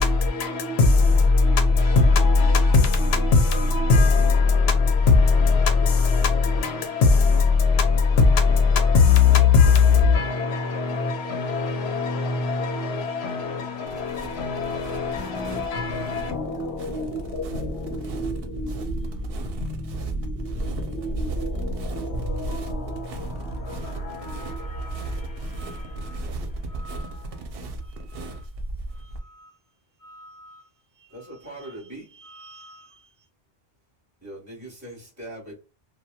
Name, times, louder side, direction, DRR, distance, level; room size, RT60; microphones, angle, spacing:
voice 1, 0.0-27.2, left 4 dB, 80° left, 0.8 m, -21 dB
voice 2, 1.3-1.6 3.6-3.8 4.4-4.7 5.6-6.1 6.8-6.9 8.8-9.1 11.0-11.3 12.3-12.8 13.2-14.1 14.4-15.1 15.5-15.6 20.6-20.9 23.7-27.4 27.8-29.6 30.0-33.3, equal, 35° left, 0.3 m, -50 dB
sound 1, 13.8-29.2, right 2 dB, 70° right, 0.7 m, -33 dB
voice 3, 31.1-32.1 34.2-35.5, right 1 dB, 15° right, 1.1 m, -40 dB
2.8 x 2.1 x 2.2 m
omnidirectional pair, 1.1 m